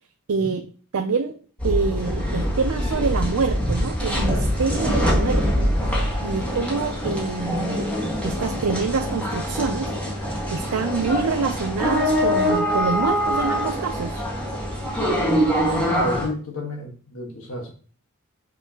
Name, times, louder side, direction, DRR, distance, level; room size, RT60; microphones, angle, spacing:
voice 1, 0.3-0.6 0.9-1.4 1.6-5.7 6.2-7.9 8.2-9.9 10.5-14.2, right 4 dB, 85° right, 7 dB, 0.5 m, -26 dB
sound 1, 1.6-16.3, equal, 5° left, 1.7 m, -24 dB
voice 2, 15.6-17.7, left 1 dB, 70° left, 1 dB, 1.5 m, -31 dB
6.4 x 5.3 x 2.9 m, 0.41 s
head